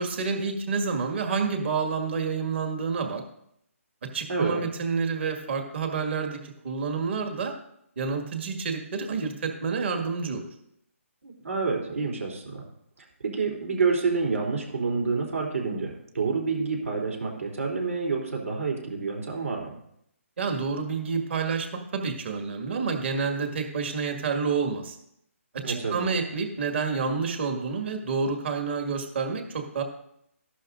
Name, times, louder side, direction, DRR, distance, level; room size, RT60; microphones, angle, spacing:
voice 1, 0.0-3.2 4.0-7.5 8.0-10.5 20.4-25.0 25.5-29.8, right 5 dB, 50° right, 4 dB, 2.0 m, -29 dB
voice 2, 4.3-4.6 11.2-12.6 13.0-19.7 25.6-26.1, right 4 dB, 80° right, 0 dB, 3.5 m, -28 dB
14.5 x 11.5 x 2.6 m, 0.74 s
hypercardioid pair, 155°, 8 cm